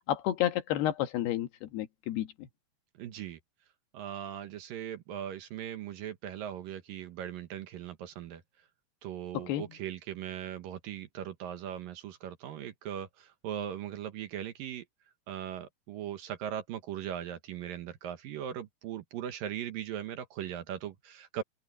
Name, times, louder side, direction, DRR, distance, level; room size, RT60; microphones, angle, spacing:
voice 1, 0.1-2.5 9.3-9.6, left 12 dB, 75° left, 3.3 m, -31 dB
voice 2, 3.0-3.4 3.9-8.4 9.0-14.9 15.3-21.4, right 10 dB, 70° right, 2.6 m, -39 dB
omnidirectional pair, 4.8 m